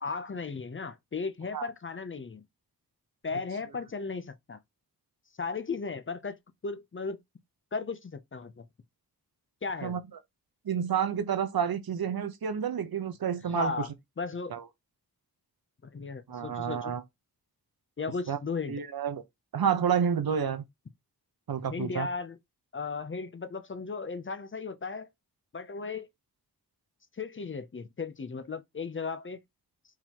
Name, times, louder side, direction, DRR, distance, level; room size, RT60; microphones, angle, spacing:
voice 1, 0.0-2.4 3.2-4.6 5.4-7.2 7.7-8.7 9.6-10.0 13.4-13.9 14.2-14.5 15.9-16.9 18.0-18.8 21.7-22.4 22.7-25.1 25.5-26.1 27.2-29.4, left 4 dB, 35° left, 0.6 m, -36 dB
voice 2, 10.7-13.7 14.5-14.6 16.3-17.0 18.3-18.4 18.7-19.2 19.5-20.6 21.5-22.1, right 7 dB, 70° right, 0.9 m, -29 dB
4.7 x 3.7 x 2.9 m
wide cardioid pair, 140°, 37 cm